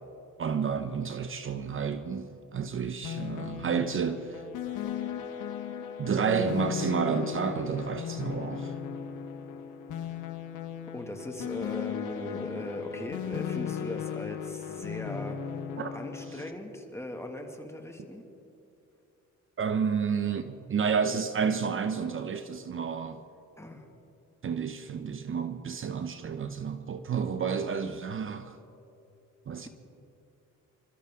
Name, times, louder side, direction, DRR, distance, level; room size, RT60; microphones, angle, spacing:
voice 1, 0.4-4.4 6.0-8.8 15.8-16.0 16.3-16.4 19.6-23.2 24.4-28.6 29.5-29.7, right 6 dB, 45° right, 0.8 m, -30 dB
sound 1, 3.0-16.5, left 9 dB, 85° left, 1.3 m, -36 dB
voice 2, 10.9-15.4 15.9-18.2 23.6-23.9, left 1 dB, 10° left, 2.1 m, -39 dB
28.0 x 13.5 x 3.7 m
cardioid pair, 90°, 30 cm